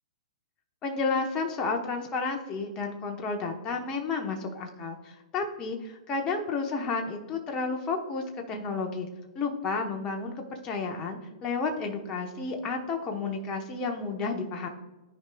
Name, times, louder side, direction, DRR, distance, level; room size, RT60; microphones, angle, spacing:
voice 1, 0.8-9.1 9.3-14.7, left 4 dB, 25° left, 3 dB, 0.9 m, -31 dB
13.5 x 4.8 x 2.3 m, 1.1 s
hypercardioid pair, 125°, 3 cm